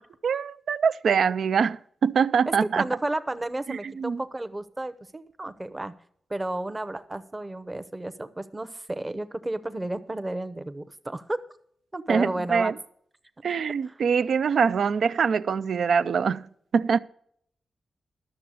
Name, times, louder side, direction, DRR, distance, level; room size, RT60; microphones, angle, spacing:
voice 1, 0.2-2.9 3.7-4.2 12.1-12.7 13.4-17.0, right 6 dB, 75° right, 0.4 m, -24 dB
voice 2, 2.6-5.9 6.3-11.4 11.9-12.7 13.9-14.0, right 1 dB, 20° right, 0.8 m, -32 dB
12.5 x 6.8 x 6.4 m
wide cardioid pair, 110°, 0 cm